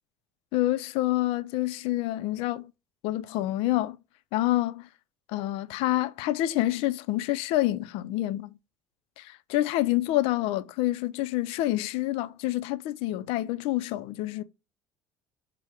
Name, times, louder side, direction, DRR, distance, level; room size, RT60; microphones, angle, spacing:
voice 1, 0.5-2.7 3.0-4.0 4.3-4.9 5.3-8.5 9.5-14.4, left 16 dB, 75° left, 0.4 m, -27 dB
4.8 x 2.0 x 4.3 m
cardioid pair, 135°, 10 cm